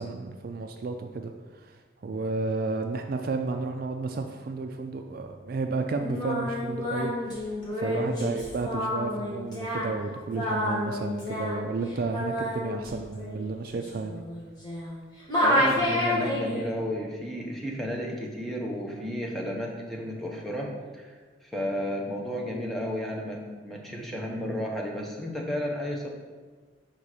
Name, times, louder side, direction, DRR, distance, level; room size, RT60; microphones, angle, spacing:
voice 1, 0.0-1.3 1.6-1.8 2.0-14.2, right 3 dB, 50° right, 5 dB, 0.3 m, -32 dB
Singing, 6.0-15.0 15.3-16.7, left 1 dB, 20° left, 1.6 m, -29 dB
voice 2, 15.4-21.1 21.4-26.1, equal, ahead, -1 dB, 0.8 m, -33 dB
5.9 x 4.1 x 4.8 m, 1.4 s
head